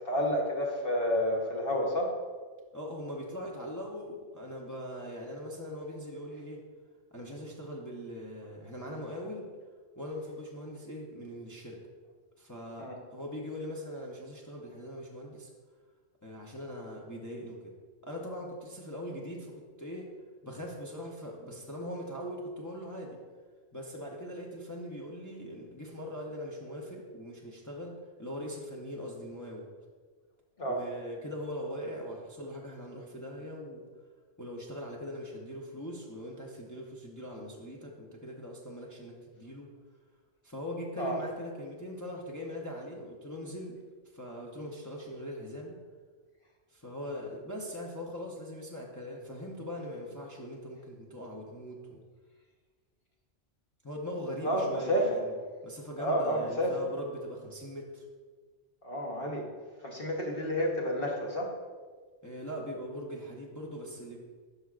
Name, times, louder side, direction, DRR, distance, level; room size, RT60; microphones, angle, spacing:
voice 1, 0.0-2.1 12.8-13.0 30.6-30.8 41.0-41.2 54.4-55.1 56.0-56.8 58.8-59.5 59.8-61.5, equal, 50° left, -1 dB, 1.2 m, -30 dB
voice 2, 2.7-6.6 7.1-9.5 10.0-11.8 12.4-15.5 16.2-17.6 18.0-20.1 20.4-23.2 23.7-29.7 30.6-33.9 34.4-39.7 40.4-43.8 44.1-45.8 46.7-52.0 53.8-55.3 55.6-58.0 62.2-64.2, equal, 20° left, -2 dB, 0.6 m, -41 dB
12.0 x 4.7 x 2.4 m, 1.5 s
omnidirectional pair, 1.3 m